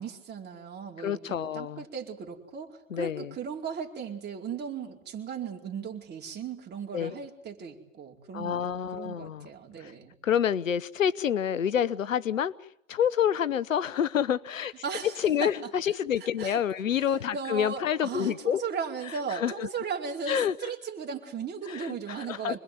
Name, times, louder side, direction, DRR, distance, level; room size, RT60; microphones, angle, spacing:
voice 1, 0.0-10.1 14.8-15.7 16.4-16.6 17.1-22.6, right 6 dB, 25° right, 1 dB, 4.7 m, -37 dB
voice 2, 1.0-1.8 2.9-3.3 6.9-7.1 8.3-9.5 9.8-9.9 10.2-12.5 12.9-14.7 15.2-18.6 19.3-19.7 20.3-20.5 21.7-22.6, left 9 dB, 90° left, 19 dB, 0.9 m, -28 dB
26.0 x 21.0 x 9.4 m, 0.75 s
hypercardioid pair, 100°, 38 cm